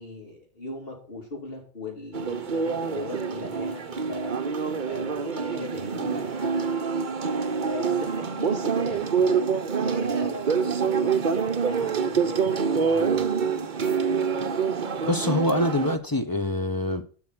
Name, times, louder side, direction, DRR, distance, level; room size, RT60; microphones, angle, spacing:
voice 1, 0.0-4.3 4.8-6.8 7.6-9.4 9.8-12.5 12.8-13.5, left 2 dB, 55° left, 4.5 m, -38 dB
sound 1, 2.1-16.0, right 6 dB, 50° right, 0.9 m, -26 dB
voice 2, 15.1-17.0, left 1 dB, 20° left, 1.1 m, -25 dB
11.5 x 6.3 x 6.0 m
omnidirectional pair, 1.1 m